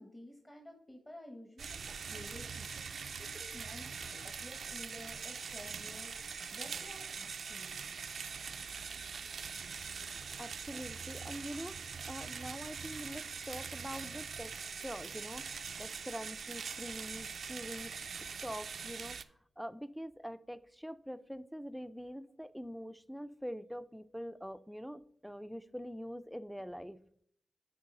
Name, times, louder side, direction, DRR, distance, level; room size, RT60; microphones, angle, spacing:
voice 1, 0.0-1.8 2.1-2.8 3.2-7.8, left 1 dB, 20° left, 1.3 m, -52 dB
sound 1, 1.6-19.2, right 6 dB, 70° right, 0.4 m, -43 dB
voice 2, 10.4-19.2 19.6-27.0, equal, ahead, 0.4 m, -44 dB
10.0 x 4.0 x 3.8 m
cardioid pair, 50°, 0 cm